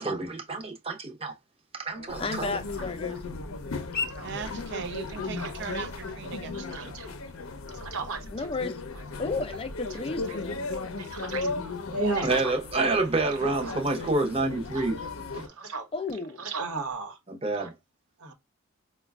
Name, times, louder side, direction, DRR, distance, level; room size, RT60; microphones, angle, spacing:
voice 1, 0.0-1.4 1.7-2.5 12.2-15.0 15.3-15.5 17.3-17.7, right 2 dB, 25° right, 0.7 m, -28 dB
sound 1, 1.9-13.7, left 4 dB, 45° left, 0.8 m, -45 dB
sound 2, 2.1-15.5, left 3 dB, 75° left, 0.6 m, -36 dB
voice 2, 2.2-3.2 8.2-8.8 9.2-10.6 15.9-16.4, left 3 dB, 25° left, 0.4 m, -33 dB
voice 3, 4.2-6.9, right 7 dB, 50° right, 0.4 m, -39 dB
voice 4, 5.4-5.7 6.7-7.1 7.8-8.5 10.7-11.5 11.9-12.5 13.6-13.7 14.7-14.8 15.3-15.9 16.4-17.2 17.6-17.7 18.2-18.3, right 3 dB, 90° right, 1.0 m, -34 dB
4.9 x 2.2 x 2.3 m
head